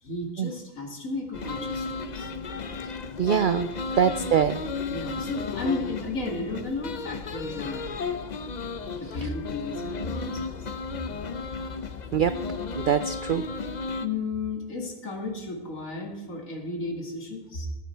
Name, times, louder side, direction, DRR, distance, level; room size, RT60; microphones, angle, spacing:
voice 1, 0.0-2.3 4.4-4.5 4.9-8.0 8.9-10.6 14.0-17.7, left 3 dB, 75° left, 2 dB, 2.7 m, -33 dB
sound 1, 1.3-14.1, left 4 dB, 40° left, 0.7 m, -34 dB
voice 2, 3.2-3.7 4.0-4.6 12.1-12.4 12.8-13.4, right 8 dB, 80° right, 12 dB, 0.4 m, -23 dB
20.0 x 8.6 x 4.5 m, 1.1 s
omnidirectional pair, 1.4 m